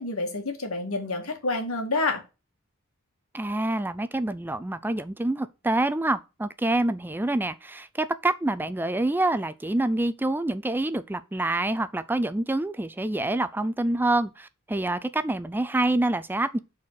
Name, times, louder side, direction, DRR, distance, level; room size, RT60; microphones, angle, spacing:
voice 1, 0.0-2.2, left 2 dB, 90° left, 2.0 m, -28 dB
voice 2, 3.3-16.6, right 2 dB, 10° right, 0.4 m, -26 dB
6.1 x 4.3 x 6.3 m
head